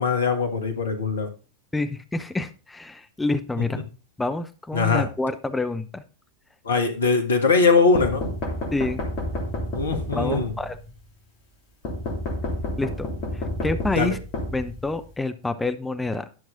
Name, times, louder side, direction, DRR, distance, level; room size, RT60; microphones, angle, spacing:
voice 1, 0.0-1.3 3.6-3.7 4.7-5.1 6.6-8.3 9.7-10.5 13.9-14.2, left 4 dB, 70° left, 6 dB, 1.5 m, -21 dB
voice 2, 1.7-3.8 4.2-6.0 8.7-9.0 10.1-10.8 12.8-14.2 14.5-16.2, left 2 dB, 10° left, 10 dB, 0.7 m, -28 dB
sound 1, 8.0-10.9 11.8-15.2, left 1 dB, 35° left, 2.8 m, -30 dB
11.0 x 6.4 x 3.8 m, 0.34 s
figure-of-eight pair, 90°, 0 cm